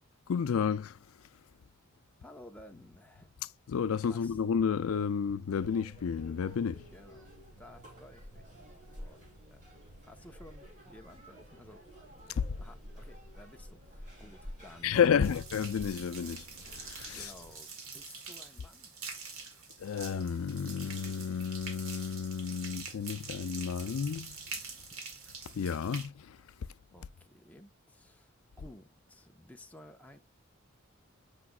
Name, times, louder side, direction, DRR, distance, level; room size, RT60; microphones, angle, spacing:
voice 1, 0.3-1.1 3.7-6.9 12.3-12.5 14.8-17.3 19.8-24.4 25.5-26.4, left 7 dB, 80° left, 0.4 m, -31 dB
voice 2, 2.2-3.4 4.1-4.4 6.9-9.7 10.1-11.9 12.6-15.4 17.1-19.0 24.9-25.0 26.9-30.2, left 1 dB, 5° left, 0.6 m, -55 dB
sound 1, 5.6-17.5, equal, 35° right, 2.5 m, -51 dB
sound 2, 15.2-26.1, right 4 dB, 75° right, 1.8 m, -45 dB
8.3 x 5.1 x 2.2 m
head